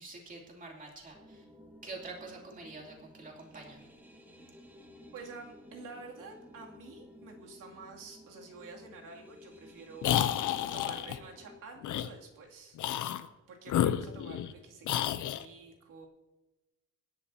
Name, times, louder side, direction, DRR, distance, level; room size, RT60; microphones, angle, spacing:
voice 1, 0.0-1.4 1.8-3.8, right 3 dB, 25° right, -1 dB, 2.9 m, -46 dB
sound 1, 1.1-11.6, left 1 dB, 5° right, 1.5 m, -55 dB
voice 2, 5.1-10.1 10.7-12.8 13.5-16.1, right 4 dB, 80° right, -1 dB, 2.8 m, -49 dB
sound 2, 10.0-11.2 11.8-12.1 12.8-13.3 13.7-14.5 14.9-15.4, left 11 dB, 70° left, 0.7 m, -30 dB
26.5 x 10.5 x 2.8 m, 1.1 s
cardioid pair, 155°, 31 cm